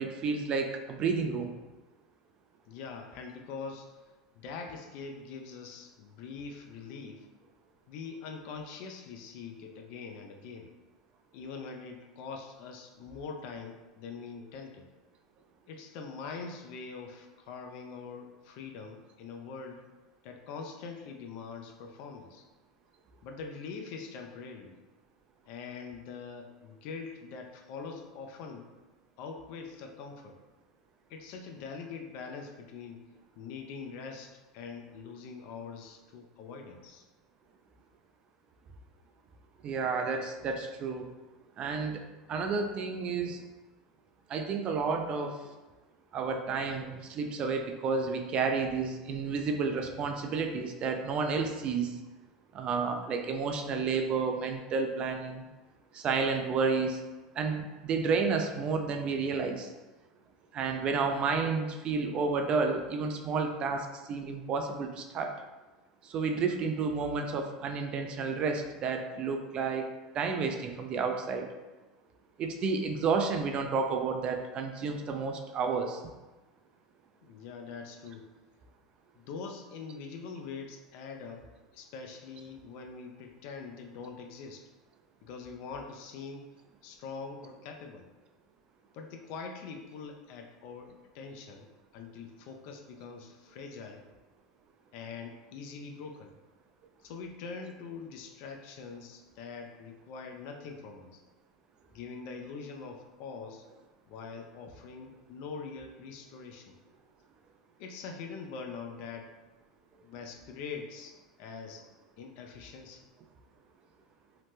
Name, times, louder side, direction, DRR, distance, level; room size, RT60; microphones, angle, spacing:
voice 1, 0.0-1.5 39.6-41.1 41.6-42.0 42.3-43.4 44.3-45.4 46.1-52.0 52.5-55.5 55.9-57.0 57.3-59.7 60.5-65.3 66.0-69.9 70.1-71.5 72.4-76.0, right 4 dB, 40° right, 5 dB, 0.4 m, -31 dB
voice 2, 2.7-4.0 4.4-7.3 7.9-10.7 11.3-14.9 15.7-19.8 20.2-22.4 23.2-24.8 25.5-28.7 29.2-30.4 31.1-33.0 33.4-37.0 77.2-78.3 79.2-81.4 81.7-84.6 85.2-86.5 86.8-88.1 88.9-91.7 91.9-94.0 94.9-96.3 97.0-101.2 101.9-103.6 104.1-106.8 107.8-109.3 110.0-111.8 112.2-113.0, left 5 dB, 60° left, 4 dB, 0.4 m, -43 dB
2.9 x 2.0 x 3.3 m, 1.2 s
hypercardioid pair, 85°, 3 cm